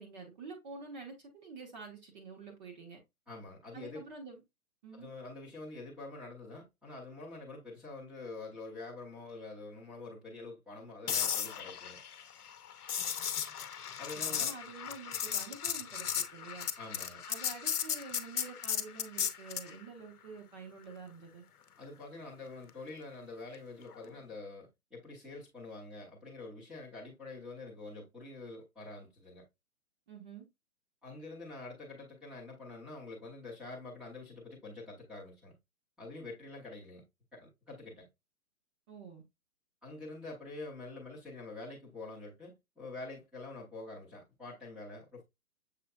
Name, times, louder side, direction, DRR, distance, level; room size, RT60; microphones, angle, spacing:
voice 1, 0.0-3.0 3.7-4.4 4.8-5.1 14.3-16.7 17.3-21.4 30.1-30.4 38.9-39.2, right 4 dB, 30° right, 1.0 m, -48 dB
voice 2, 3.3-4.0 4.9-12.0 14.0-14.5 16.8-17.2 21.8-29.4 31.0-35.6 36.0-37.0 37.3-38.1 39.8-45.2, left 3 dB, ahead, 0.8 m, -46 dB
sound 1, 11.1-19.7 23.9-24.1, left 8 dB, 80° left, 0.8 m, -36 dB
6.7 x 3.3 x 2.3 m
hypercardioid pair, 145°, 45 cm